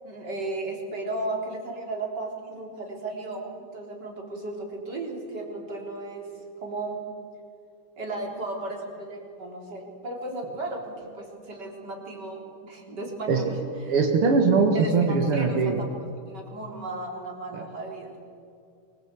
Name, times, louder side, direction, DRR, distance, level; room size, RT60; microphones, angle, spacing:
voice 1, 0.0-6.3 6.6-7.0 8.0-13.9 14.7-15.9 16.3-18.2, right 2 dB, 50° right, 0 dB, 4.4 m, -35 dB
voice 2, 13.9-15.8 17.5-17.6, right 4 dB, 85° right, 3 dB, 2.6 m, -21 dB
25.0 x 21.0 x 8.4 m, 2.5 s
omnidirectional pair, 2.4 m